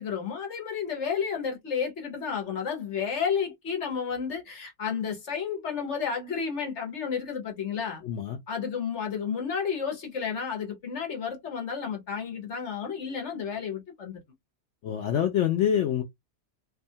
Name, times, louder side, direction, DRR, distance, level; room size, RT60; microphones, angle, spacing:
voice 1, 0.0-8.0 8.5-14.2, left 6 dB, 55° left, 1.1 m, -31 dB
voice 2, 8.0-8.4 14.8-16.0, left 9 dB, 70° left, 0.7 m, -25 dB
2.7 x 2.3 x 2.7 m
omnidirectional pair, 1.7 m